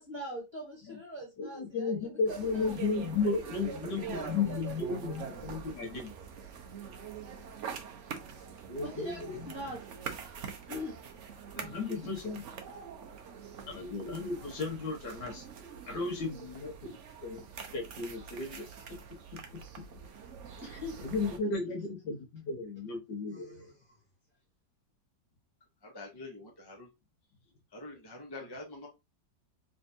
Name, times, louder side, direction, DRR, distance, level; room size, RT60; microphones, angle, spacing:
voice 1, 0.0-2.8 3.7-5.3 5.6-5.7 8.7-9.8 10.7-11.0 11.9-12.1 15.9-16.3 16.9-17.0 20.6-21.0 21.4-21.7 22.1-22.2 23.3-24.0, left 1 dB, 15° right, 1.3 m, -43 dB
voice 2, 1.4-6.1 8.7-9.5 11.5-12.4 13.7-15.4 15.9-16.7 17.2-17.4 17.7-18.6 19.3-19.4 21.0-23.7, left 4 dB, 75° left, 1.8 m, -34 dB
sound 1, 2.3-21.4, right 7 dB, 60° right, 0.8 m, -44 dB
voice 3, 25.8-26.9 27.7-28.9, left 2 dB, 25° left, 0.5 m, -45 dB
3.8 x 3.4 x 2.7 m
omnidirectional pair, 1.9 m